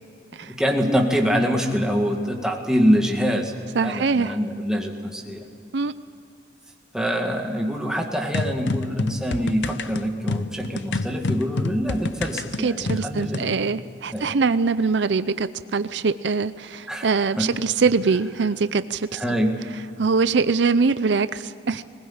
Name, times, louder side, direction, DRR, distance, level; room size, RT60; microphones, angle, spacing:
voice 1, 0.5-3.5 3.8-5.4 6.9-13.5 14.1-14.3 16.9-17.5 19.2-19.6, equal, 5° right, 1 dB, 1.9 m, -24 dB
voice 2, 3.7-4.4 5.7-5.9 12.6-19.2 20.0-21.8, right 4 dB, 70° right, 14 dB, 0.5 m, -23 dB
sound 1, 8.3-13.5, left 3 dB, 75° left, 0.7 m, -28 dB
21.0 x 19.5 x 8.8 m, 2.6 s
head